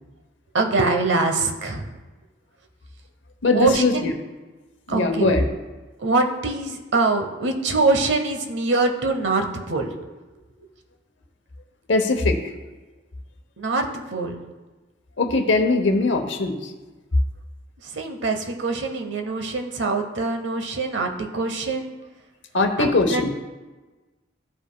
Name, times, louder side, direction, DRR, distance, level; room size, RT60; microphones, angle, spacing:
voice 1, 0.5-2.0 3.5-4.1 4.9-5.3 6.0-9.9 10.6-10.7 13.6-14.4 17.8-21.9 22.8-23.3, right 3 dB, 70° right, 4 dB, 0.9 m, -24 dB
voice 2, 3.4-4.1 4.9-5.4 11.9-12.4 15.2-16.7 22.5-23.3, left 3 dB, 70° left, 6 dB, 0.9 m, -20 dB
14.0 x 5.1 x 2.2 m, 1.2 s
head